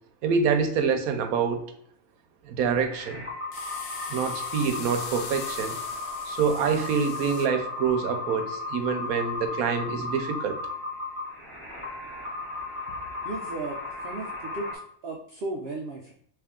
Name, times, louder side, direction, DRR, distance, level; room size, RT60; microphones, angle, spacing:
voice 1, 0.2-1.6 2.4-3.2 4.1-5.7 6.3-10.6, right 6 dB, 85° right, 7 dB, 1.1 m, -26 dB
sound 1, 2.8-14.7, left 3 dB, 10° left, 1.1 m, -35 dB
sound 2, 3.5-7.5, left 6 dB, 80° left, 1.0 m, -41 dB
voice 2, 13.2-14.7 15.0-16.1, right 2 dB, 65° right, 0 dB, 0.7 m, -35 dB
3.4 x 3.2 x 3.6 m, 0.65 s
omnidirectional pair, 1.4 m